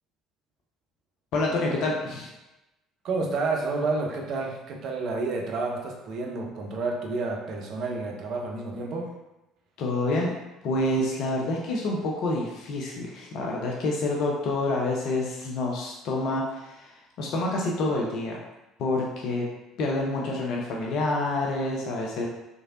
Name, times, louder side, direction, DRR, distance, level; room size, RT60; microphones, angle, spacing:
voice 1, 1.3-2.3 9.8-10.3 10.6-18.4 18.8-19.5 19.8-22.3, left 2 dB, 55° left, -1 dB, 0.4 m, -28 dB
voice 2, 3.0-9.1, right 3 dB, 50° right, 0 dB, 0.5 m, -30 dB
3.1 x 2.5 x 2.4 m, 0.97 s
figure-of-eight pair, 55°, 0 cm